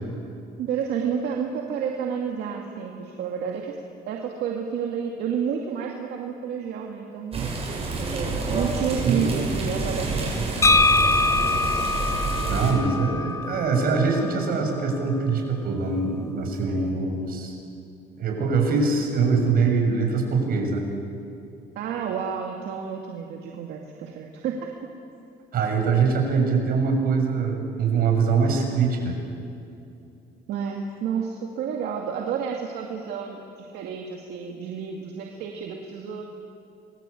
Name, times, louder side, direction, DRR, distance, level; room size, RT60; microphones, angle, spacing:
voice 1, 0.6-3.8 4.1-7.5 8.5-10.4 16.7-16.9 21.8-24.7 30.5-36.2, right 7 dB, 80° right, 1 dB, 2.4 m, -30 dB
sound 1, 7.3-12.7, right 3 dB, 35° right, 7.6 m, -28 dB
sound 2, 10.6-14.4, left 3 dB, 15° left, 1.3 m, -23 dB
voice 2, 12.5-17.5 18.2-20.8 25.5-29.2, right 4 dB, 60° right, 2 dB, 7.1 m, -23 dB
27.5 x 22.0 x 8.5 m, 2.7 s
cardioid pair, 110°, 17 cm